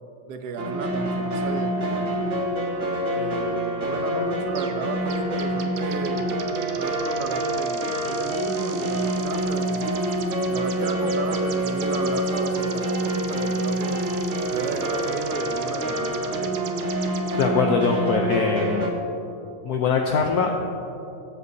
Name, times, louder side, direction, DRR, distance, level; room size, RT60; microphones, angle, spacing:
voice 1, 0.3-2.3 3.1-6.4 6.8-10.1 10.5-14.0 14.5-16.6, right 4 dB, 65° right, 6 dB, 1.3 m, -34 dB
sound 1, 0.6-18.9, right 1 dB, 45° right, 1.6 m, -26 dB
sound 2, 4.6-4.8 5.1-17.5, right 8 dB, 85° right, 1.5 m, -40 dB
voice 2, 17.4-18.9 19.6-20.5, left 5 dB, 65° left, 2 dB, 1.2 m, -22 dB
22.0 x 8.2 x 2.8 m, 2.8 s
omnidirectional pair, 1.9 m